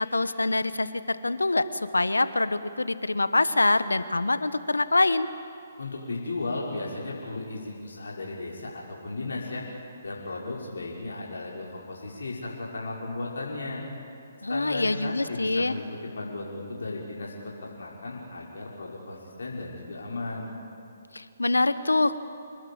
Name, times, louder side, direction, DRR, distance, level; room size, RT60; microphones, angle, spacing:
voice 1, 0.0-5.3 14.4-15.8 21.1-22.2, left 2 dB, 90° left, 14 dB, 1.3 m, -25 dB
voice 2, 5.8-9.6 10.0-13.8 14.5-15.8 16.2-20.5, left 2 dB, 75° left, -3 dB, 5.5 m, -35 dB
28.0 x 20.5 x 8.8 m, 2.5 s
figure-of-eight pair, 140°, 0 cm